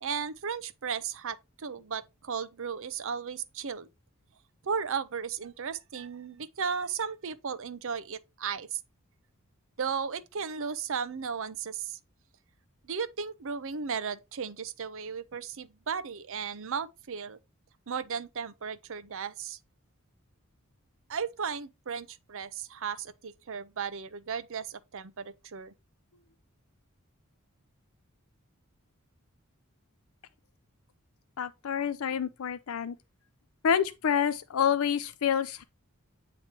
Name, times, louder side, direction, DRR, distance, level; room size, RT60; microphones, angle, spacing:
voice 1, 0.0-3.9 4.6-8.8 9.8-12.0 12.8-17.4 17.9-19.6 21.1-25.7, right 6 dB, 65° right, 0.6 m, -35 dB
voice 2, 31.4-32.9 33.6-35.6, left 8 dB, 70° left, 0.5 m, -28 dB
8.8 x 3.1 x 4.4 m
head